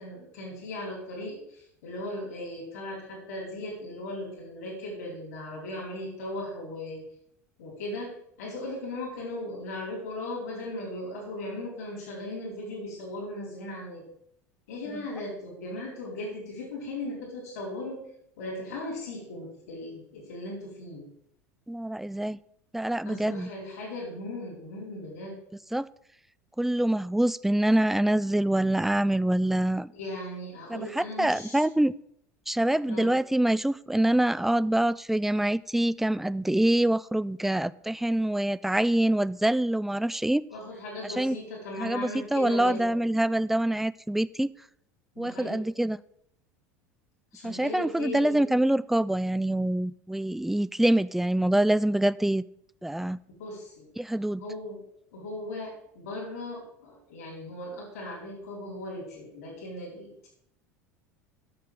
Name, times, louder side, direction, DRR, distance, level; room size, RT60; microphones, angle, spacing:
voice 1, 0.0-7.0 7.6-8.1 8.4-14.0 14.7-18.0 18.4-21.1 23.0-25.4 29.9-31.7 32.8-33.1 40.5-42.9 45.2-45.6 47.3-48.6 53.3-53.9 54.4-54.8 55.1-60.3, left 1 dB, 75° left, -3 dB, 4.4 m, -38 dB
voice 2, 21.7-22.4 22.7-23.5 25.7-25.9 26.6-29.9 30.7-31.9 32.5-40.4 41.2-41.4 41.8-44.5 45.2-46.0 47.4-52.4 52.8-53.2 54.0-54.4, right 1 dB, 5° right, 18 dB, 0.4 m, -25 dB
8.6 x 6.7 x 7.7 m, 0.73 s
hypercardioid pair, 80°, 9 cm